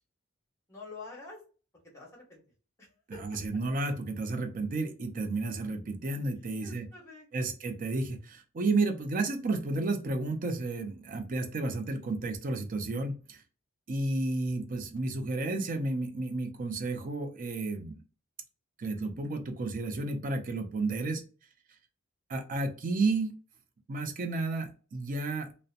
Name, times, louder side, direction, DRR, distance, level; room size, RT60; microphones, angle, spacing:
voice 1, 0.7-1.4 1.9-2.4 2.8-3.4 6.6-7.5, left 3 dB, 15° left, -2 dB, 0.9 m, -47 dB
voice 2, 3.2-6.9 7.3-13.4 13.9-18.0 18.8-21.2 22.3-23.3 23.9-25.5, right 3 dB, 40° right, 6 dB, 0.5 m, -32 dB
2.7 x 2.1 x 2.5 m, 0.35 s
head